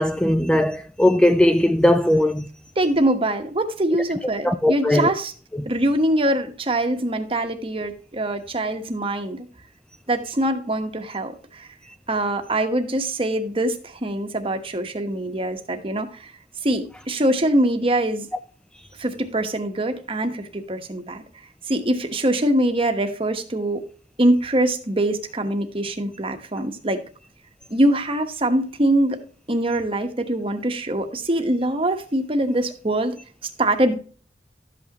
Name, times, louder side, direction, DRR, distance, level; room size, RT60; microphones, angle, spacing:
voice 1, 0.0-2.5 4.4-5.1 5.6-5.7, left 1 dB, 5° left, 0.4 m, -18 dB
voice 2, 2.8-5.3 5.6-9.5 10.1-11.7 12.1-16.3 16.6-18.3 19.0-21.2 21.7-23.8 24.2-27.0 27.7-33.2 33.6-34.0, right 1 dB, 30° right, 1.2 m, -23 dB
12.5 x 8.3 x 3.0 m
head